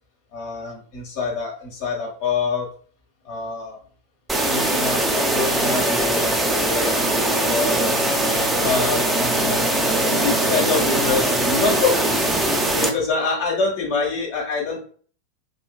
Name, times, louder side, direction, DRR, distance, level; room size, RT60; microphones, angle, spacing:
voice 1, 0.3-2.7 3.2-3.8 4.4-7.9 8.6-9.8 10.1-12.2 12.5-14.8, left 4 dB, 50° left, 0 dB, 1.2 m, -26 dB
sound 1, 4.3-12.9, right 1 dB, 5° right, 0.5 m, -21 dB
3.1 x 3.1 x 2.2 m, 0.44 s
figure-of-eight pair, 90°, 0 cm